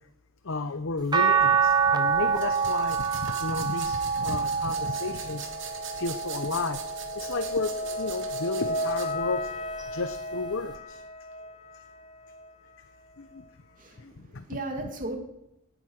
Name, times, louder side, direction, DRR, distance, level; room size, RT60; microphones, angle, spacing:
voice 1, 0.4-5.5 6.0-6.8 7.1-9.5 9.9-11.0 13.2-13.5 14.0-14.4, left 3 dB, 60° left, 10 dB, 0.8 m, -33 dB
sound 1, 1.1-7.4 8.0-9.3 10.8-10.9, right 6 dB, 20° right, 1.1 m, -27 dB
sound 2, 1.4-12.7, left 1 dB, 30° left, 1.8 m, -37 dB
sound 3, 2.3-9.1, right 7 dB, 55° right, 2.8 m, -42 dB
voice 2, 13.8-15.2, right 2 dB, 35° right, 3 dB, 2.7 m, -36 dB
18.0 x 10.0 x 6.5 m, 0.85 s
head